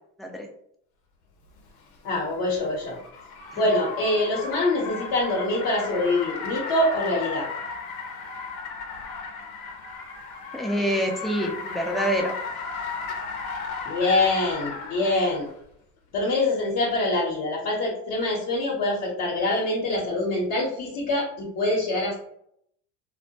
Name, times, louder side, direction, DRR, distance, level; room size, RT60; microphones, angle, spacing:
Car, 1.6-15.5, left 4 dB, 85° left, 0.7 m, -35 dB
voice 1, 2.0-3.0 3.6-7.5 13.9-15.5 16.1-22.2, left 2 dB, 55° left, -4 dB, 0.8 m, -25 dB
voice 2, 10.5-12.3, equal, ahead, 1 dB, 0.4 m, -26 dB
2.1 x 2.1 x 2.7 m, 0.70 s
hypercardioid pair, 80°, 42 cm